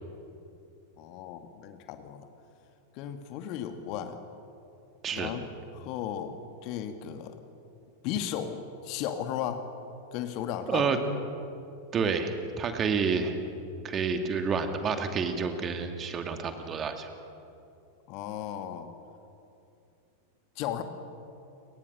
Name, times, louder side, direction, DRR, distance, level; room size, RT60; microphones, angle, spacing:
voice 1, 1.0-2.3 2.9-4.2 5.1-5.5 5.7-6.4 6.6-7.4 8.0-9.7 10.1-11.0 18.1-18.9 20.6-20.8, left 10 dB, 45° left, 8 dB, 1.9 m, -35 dB
voice 2, 11.9-13.4 13.8-17.1, right 5 dB, 25° right, 6 dB, 2.6 m, -29 dB
29.5 x 23.0 x 6.7 m, 2.7 s
figure-of-eight pair, 90°, 0 cm